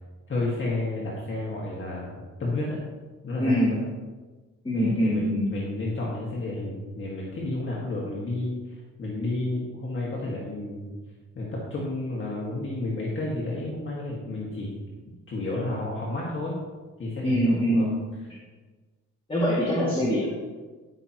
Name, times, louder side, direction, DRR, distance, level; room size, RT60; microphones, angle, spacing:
voice 1, 0.3-2.8 3.2-3.8 4.7-10.9 11.3-14.8 15.1-16.6 17.0-17.9, left 2 dB, 40° left, -5 dB, 1.9 m, -31 dB
voice 2, 3.4-3.7 4.6-5.5 17.2-17.9 19.3-20.3, equal, 15° left, -7 dB, 2.3 m, -23 dB
13.5 x 5.8 x 3.0 m, 1.3 s
cardioid pair, 90°, 30 cm